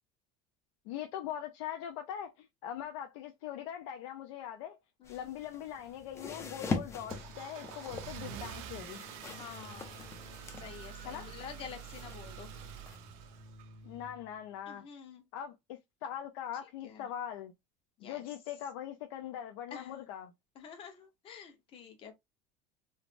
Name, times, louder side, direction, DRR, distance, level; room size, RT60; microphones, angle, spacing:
voice 1, 0.9-4.8 5.1-9.1 11.1-11.3 13.8-14.9 15.3-17.5 18.0-20.3, left 10 dB, 85° left, 0.5 m, -41 dB
sound 1, 5.0-13.0, left 4 dB, 15° left, 0.4 m, -43 dB
Car / Engine starting, 5.8-14.0, right 10 dB, 70° right, 0.5 m, -47 dB
Keyboard (musical), 6.2-14.6, left 1 dB, 65° left, 1.1 m, -55 dB
voice 2, 9.4-10.1 10.6-12.5 14.7-15.2 16.8-17.1 18.0-18.3 19.7-20.1 20.5-22.1, left 7 dB, 35° left, 0.8 m, -48 dB
3.2 x 2.0 x 2.5 m
cardioid pair, 155°, 16 cm